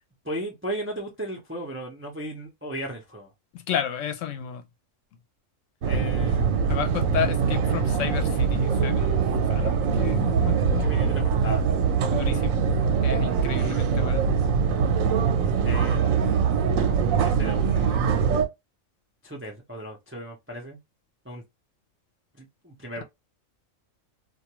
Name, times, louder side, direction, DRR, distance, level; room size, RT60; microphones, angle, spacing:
voice 1, 0.2-3.3 5.8-6.5 10.8-11.7 15.6-16.5 17.2-18.2 19.2-20.8 21.2-21.4 22.4-23.0, right 1 dB, 20° right, 0.3 m, -36 dB
voice 2, 3.5-4.6 6.7-10.9 12.1-12.6 13.0-14.3, left 9 dB, 75° left, 0.9 m, -32 dB
sound 1, 5.8-18.5, right 6 dB, 85° right, 1.0 m, -23 dB
2.4 x 2.2 x 2.9 m
omnidirectional pair, 1.4 m